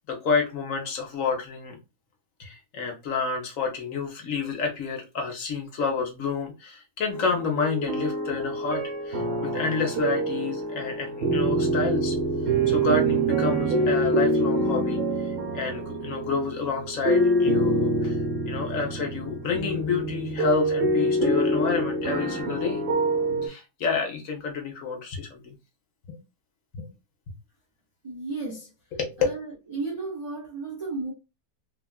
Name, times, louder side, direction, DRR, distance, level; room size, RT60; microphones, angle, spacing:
voice 1, 0.0-1.8 2.4-12.2 12.7-18.2 18.5-22.8 23.4-25.5 26.1-26.2 26.7-26.9 28.9-29.2, left 4 dB, 60° left, 1.1 m, -29 dB
sound 1, 7.1-23.5, right 1 dB, 80° right, 1.6 m, -26 dB
voice 2, 28.0-28.7 29.2-29.5 29.7-31.1, right 3 dB, 35° right, 0.5 m, -33 dB
3.4 x 2.3 x 2.2 m
omnidirectional pair, 1.7 m